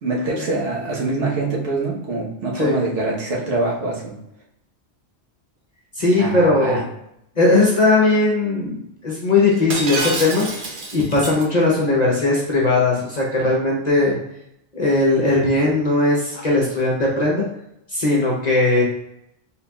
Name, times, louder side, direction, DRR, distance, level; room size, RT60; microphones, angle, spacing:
voice 1, 0.0-4.2 6.2-6.8, right 2 dB, 80° right, -3 dB, 1.4 m, -24 dB
voice 2, 6.0-6.8 7.4-10.6 10.9-14.1 14.7-17.4 17.9-18.8, left 2 dB, 40° left, -3 dB, 0.8 m, -18 dB
Shatter, 9.7-11.4, right 2 dB, 50° right, 0.8 m, -27 dB
4.3 x 3.6 x 2.3 m, 0.79 s
omnidirectional pair, 1.2 m